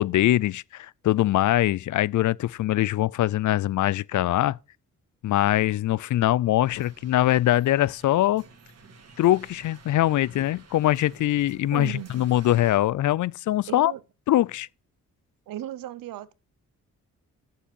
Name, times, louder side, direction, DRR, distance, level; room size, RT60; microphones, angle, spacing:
voice 1, 0.0-4.6 5.2-8.4 9.2-13.9 14.3-14.7, left 14 dB, 65° left, 0.4 m, -22 dB
sound 1, 6.6-12.8, right 4 dB, 50° right, 2.1 m, -51 dB
voice 2, 11.7-12.1 13.7-14.0 15.5-16.3, right 13 dB, 80° right, 0.8 m, -36 dB
7.2 x 7.1 x 5.3 m
supercardioid pair, 55°, 33 cm